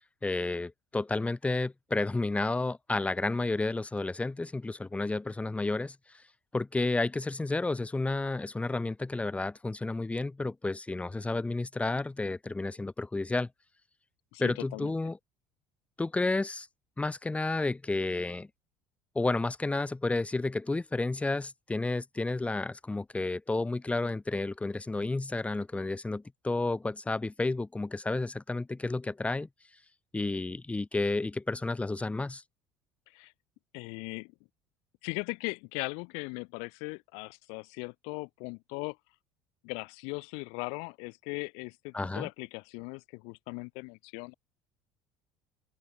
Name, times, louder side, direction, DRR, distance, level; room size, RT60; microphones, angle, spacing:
voice 1, 0.2-6.0 6.5-13.5 14.4-15.2 16.0-16.7 17.0-18.5 19.2-29.5 30.1-32.4 41.9-42.3, left 2 dB, 10° left, 0.6 m, -31 dB
voice 2, 14.3-14.9 33.1-33.3 33.7-34.3 35.0-39.0 39.6-44.3, left 33 dB, 70° left, 1.7 m, -39 dB
open air
hypercardioid pair, 65°, 11 cm